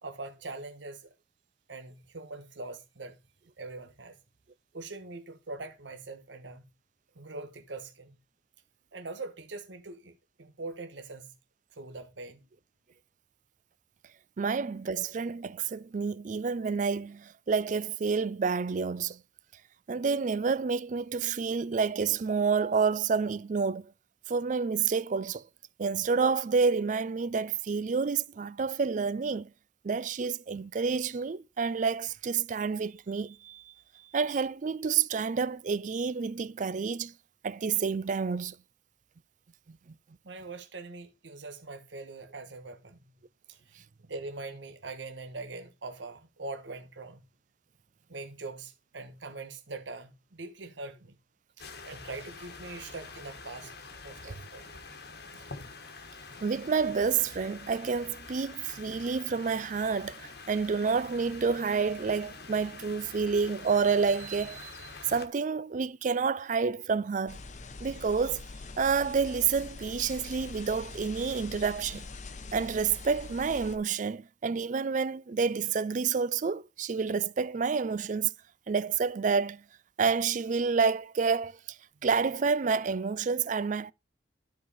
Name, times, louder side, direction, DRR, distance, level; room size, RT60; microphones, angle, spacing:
voice 1, 0.0-1.1 1.7-3.2 3.6-4.2 4.7-6.6 7.1-8.2 8.9-11.3 11.8-12.4 40.2-43.1 43.5-43.6 44.0-47.2 48.1-51.2 51.6-53.7 54.0-54.8, right 3 dB, 80° right, 1.3 m, -42 dB
voice 2, 14.4-19.2 19.9-23.9 24.3-25.4 25.8-29.5 29.8-33.7 34.1-37.1 37.4-38.6 39.7-39.8 54.2-54.3 56.4-67.4 67.8-68.4 68.8-72.1 72.5-78.3 78.7-79.6 80.0-83.9, right 5 dB, 45° right, 0.4 m, -29 dB
sound 1, 51.6-65.3, left 4 dB, 60° left, 1.3 m, -46 dB
sound 2, 67.3-73.8, left 3 dB, 40° left, 0.9 m, -43 dB
12.5 x 4.8 x 4.2 m
head